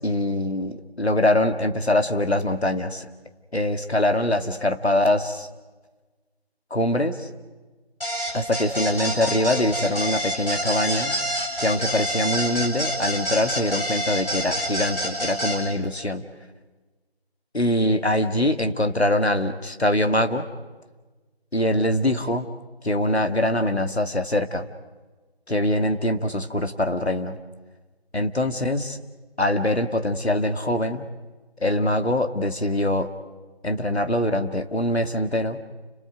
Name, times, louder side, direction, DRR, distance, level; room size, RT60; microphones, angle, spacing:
voice 1, 0.0-3.1 3.5-5.5 6.7-7.3 8.3-11.1 11.6-16.2 17.5-20.4 21.5-22.5 22.8-24.7 25.5-27.4 28.1-29.0 29.4-31.1 31.6-33.1 33.6-35.6, left 1 dB, 85° left, 7 dB, 2.2 m, -23 dB
sound 1, 8.0-15.6, equal, 60° left, 7.9 m, -27 dB
30.0 x 27.0 x 5.1 m, 1.3 s
figure-of-eight pair, 180°, 31 cm